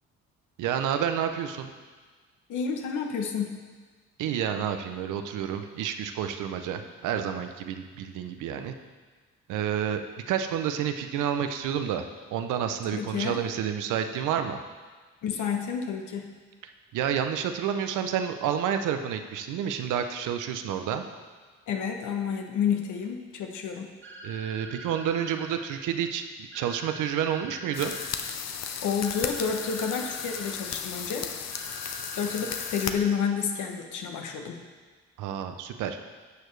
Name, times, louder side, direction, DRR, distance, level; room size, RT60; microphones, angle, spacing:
voice 1, 0.6-1.7 4.2-8.7 9.5-10.0 10.3-14.6 16.9-21.0 24.2-27.9 35.2-36.0, right 9 dB, 90° right, 7 dB, 0.7 m, -29 dB
voice 2, 2.5-3.6 12.9-13.4 15.2-16.4 21.7-23.9 28.8-31.3 32.2-34.6, left 6 dB, 80° left, 3 dB, 1.0 m, -30 dB
sound 1, 24.0-25.5 26.5-28.0 29.0-30.5 31.5-33.0, right 1 dB, 40° right, 1.5 m, -44 dB
sound 2, 27.7-32.9, left 7 dB, 60° left, 0.7 m, -35 dB
11.0 x 6.7 x 3.2 m, 1.4 s
cardioid pair, 90°, 30 cm